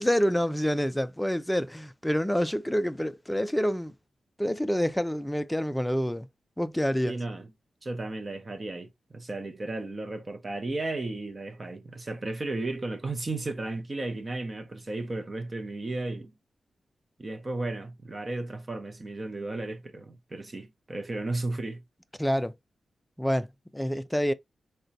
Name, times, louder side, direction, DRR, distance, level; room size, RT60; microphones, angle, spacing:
voice 1, 0.0-3.9 4.4-6.3 6.6-7.2 22.2-22.5 23.2-24.3, equal, 5° left, 0.3 m, -27 dB
voice 2, 7.1-7.5 7.8-16.3 17.2-21.8, right 2 dB, 30° right, 0.7 m, -34 dB
4.9 x 2.2 x 2.7 m
wide cardioid pair, 130°, 0 cm